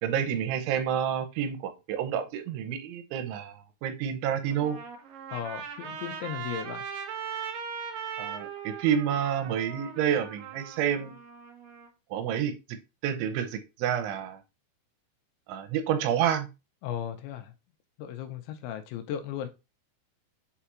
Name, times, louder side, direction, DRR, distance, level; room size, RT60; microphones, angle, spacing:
voice 1, 0.0-4.8 8.2-11.1 12.1-12.5 13.0-14.4 15.5-16.5, right 9 dB, 90° right, 9 dB, 3.3 m, -29 dB
Trumpet, 4.4-11.9, right 7 dB, 75° right, 2.1 m, -39 dB
voice 2, 5.3-6.8 16.8-17.5 18.0-19.5, left 10 dB, 85° left, 8 dB, 3.1 m, -36 dB
6.7 x 4.9 x 2.9 m, 0.26 s
omnidirectional pair, 5.4 m